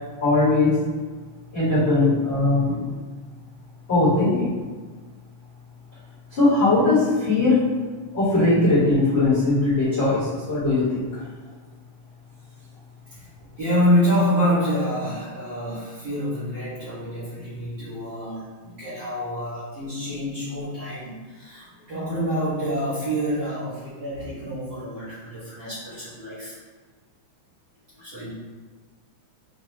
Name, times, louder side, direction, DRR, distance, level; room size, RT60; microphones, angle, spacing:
voice 1, 0.2-0.8 1.5-2.8 3.9-4.5 6.3-7.6 8.1-11.3, left 2 dB, 35° left, -12 dB, 1.1 m, -20 dB
voice 2, 13.6-26.5 27.9-28.3, equal, 50° right, -13 dB, 1.5 m, -27 dB
5.5 x 2.2 x 3.2 m, 1.4 s
omnidirectional pair, 3.3 m